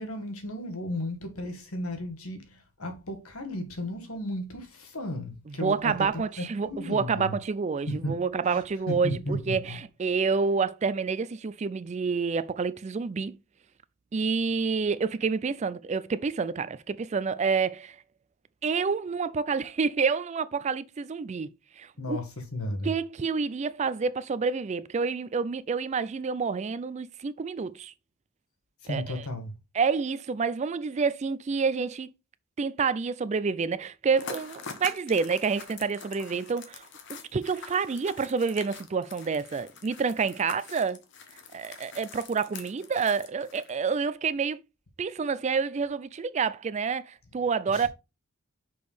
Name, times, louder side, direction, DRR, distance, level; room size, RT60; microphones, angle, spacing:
voice 1, 0.0-7.3 7.9-8.2 8.5-8.6 8.9-9.8 22.0-22.9 28.8-29.5 47.7-47.9, left 1 dB, 90° left, 1.6 m, -34 dB
voice 2, 5.5-13.4 14.1-18.0 18.6-22.2 22.8-27.9 28.9-29.2 29.7-32.1 32.6-41.0 41.5-44.6 45.0-47.9, right 5 dB, 35° right, 0.3 m, -28 dB
sound 1, 34.1-43.9, left 5 dB, 55° left, 1.0 m, -44 dB
6.2 x 5.2 x 3.3 m
head